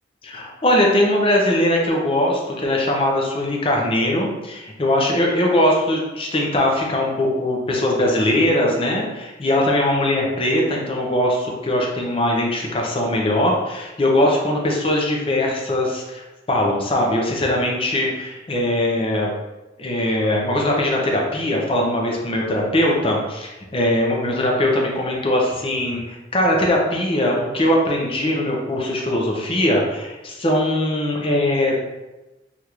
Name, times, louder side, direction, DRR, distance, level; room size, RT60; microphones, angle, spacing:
voice 1, 0.2-19.3 19.8-31.8, left 1 dB, 30° left, -1 dB, 0.6 m, -21 dB
3.4 x 2.5 x 2.9 m, 1.1 s
head